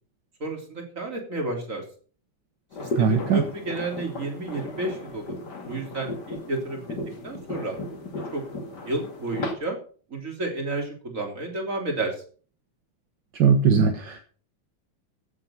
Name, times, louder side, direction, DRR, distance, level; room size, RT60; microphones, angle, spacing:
voice 1, 0.4-1.8 2.8-5.4 5.7-6.8 7.2-7.8 8.3-8.4 8.9-9.8 10.1-12.2, right 2 dB, 40° right, 2 dB, 3.7 m, -31 dB
sound 1, 2.7-9.5, left 2 dB, 60° left, 2.8 m, -35 dB
voice 2, 3.0-3.4 13.4-14.2, right 6 dB, 70° right, 6 dB, 1.8 m, -19 dB
15.0 x 7.7 x 5.8 m, 0.42 s
omnidirectional pair, 2.1 m